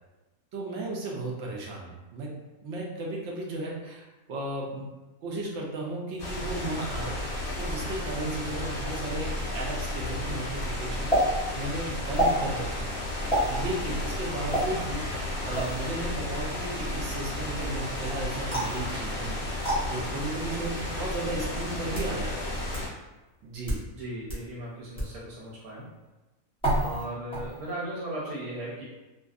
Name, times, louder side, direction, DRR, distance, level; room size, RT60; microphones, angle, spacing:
voice 1, 0.5-2.3 2.6-4.9 5.2-7.2 7.5-13.0 13.5-22.6 23.4-23.8, right 2 dB, 65° right, -2 dB, 0.7 m, -35 dB
sound 1, 6.2-22.9, left 1 dB, 55° left, 0.6 m, -33 dB
sound 2, 11.1-11.2 12.1-12.4 13.3-13.5 14.5-14.7 15.5-15.8 18.5-18.8 19.6-19.8 20.7-20.8 21.7-22.1 22.7-22.8 23.5-23.8 24.3-24.4 25.0-25.1 26.6-27.0 27.3-27.7, right 1 dB, 5° left, 0.6 m, -27 dB
voice 2, 24.0-25.9 26.7-28.8, right 1 dB, 85° right, -7 dB, 1.1 m, -37 dB
2.6 x 2.3 x 2.3 m, 1.1 s
omnidirectional pair, 1.5 m